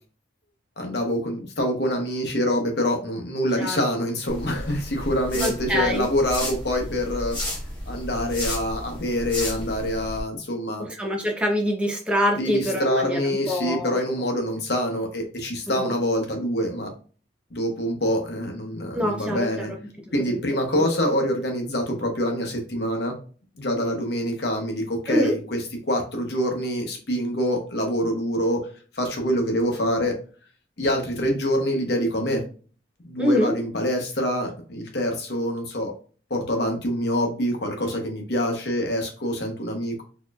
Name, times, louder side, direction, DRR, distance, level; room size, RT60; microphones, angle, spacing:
voice 1, 0.8-7.4 7.9-10.8 12.4-16.9 17.5-19.7 20.1-23.1 23.6-25.6 25.9-28.6 28.9-30.1 30.8-32.4 33.0-35.9 36.3-40.0, equal, 55° left, 3 dB, 1.0 m, -25 dB
voice 2, 3.6-3.9 5.3-6.1 10.8-14.0 15.8-15.9 18.9-19.7 20.2-20.4 20.7-20.9 25.1-25.3 33.2-33.5, equal, 5° right, 0 dB, 0.7 m, -25 dB
sound 1, 4.3-10.2, left 1 dB, 25° left, 1.4 m, -33 dB
4.2 x 2.9 x 2.4 m, 0.39 s
head